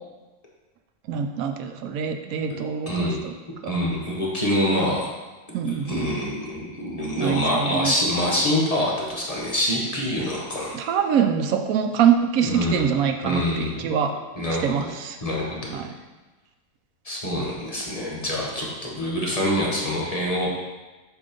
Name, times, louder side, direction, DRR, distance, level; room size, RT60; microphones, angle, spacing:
voice 1, 1.1-3.3 3.6-3.7 5.5-6.2 7.2-7.9 10.7-14.2 14.6-15.2 15.7-15.9, right 7 dB, 85° right, 6 dB, 1.1 m, -24 dB
voice 2, 2.9-3.2 3.7-5.1 5.5-10.8 12.4-12.9 13.2-13.9 14.4-14.9 15.2-15.8 17.0-20.5, left 1 dB, 30° left, -4 dB, 1.0 m, -25 dB
7.1 x 2.9 x 5.2 m, 1.2 s
omnidirectional pair, 1.4 m